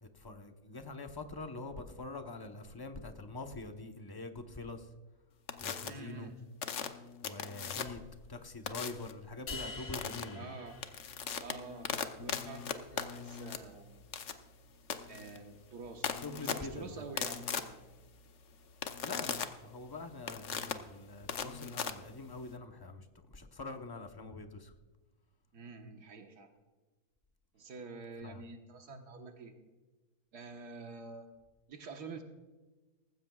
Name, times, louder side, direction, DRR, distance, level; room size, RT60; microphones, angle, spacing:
voice 1, 0.0-4.9 5.6-6.3 7.2-8.0 8.3-10.5 16.1-17.0 19.0-24.7 28.2-28.4, left 2 dB, 20° left, 6 dB, 0.7 m, -45 dB
sound 1, 5.5-5.9 6.6-8.1 8.7-9.1 9.9-10.2 10.7-22.6, left 7 dB, 55° left, 1.0 m, -39 dB
voice 2, 5.8-6.3 10.3-10.7 11.4-14.0 15.1-17.8 25.5-26.5 27.5-29.5 30.3-31.3 31.7-32.2, right 4 dB, 90° right, 4 dB, 1.8 m, -48 dB
sound 2, 9.5-11.8, left 4 dB, 85° left, 1.9 m, -47 dB
18.5 x 15.5 x 2.3 m, 1.2 s
omnidirectional pair, 1.6 m